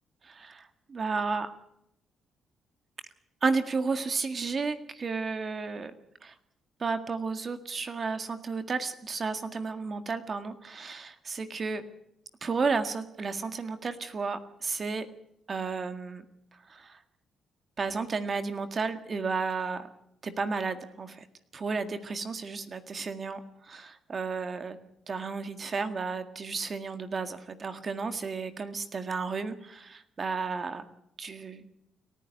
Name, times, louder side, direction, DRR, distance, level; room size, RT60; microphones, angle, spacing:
voice 1, 0.2-1.5 3.4-5.9 6.2-6.3 6.8-11.8 12.4-15.1 15.5-16.2 16.7-17.0 17.8-19.9 20.2-21.3 21.5-24.8 25.1-30.9 31.2-31.7, right 4 dB, 40° right, 8 dB, 1.8 m, -32 dB
29.5 x 10.0 x 9.5 m, 0.77 s
cardioid pair, 90°, 0 cm